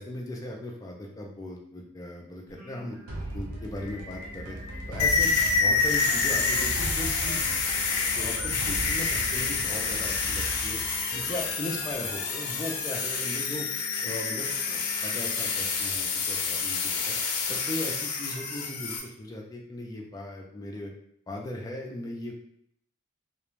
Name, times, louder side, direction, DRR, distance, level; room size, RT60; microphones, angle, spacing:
voice 1, 0.0-3.0 3.3-4.6 4.9-7.5 7.7-7.8 8.2-10.8 11.1-13.7 14.0-17.1 17.5-20.9 21.3-22.4, left 1 dB, 15° left, -1 dB, 0.3 m, -38 dB
Singing, 2.5-15.8, left 1 dB, 35° left, 0.7 m, -47 dB
sound 1, 3.1-11.9, right 1 dB, 75° right, 0.5 m, -38 dB
sound 2, 5.0-19.0, left 5 dB, 80° left, 0.5 m, -28 dB
2.4 x 2.1 x 3.1 m, 0.71 s
head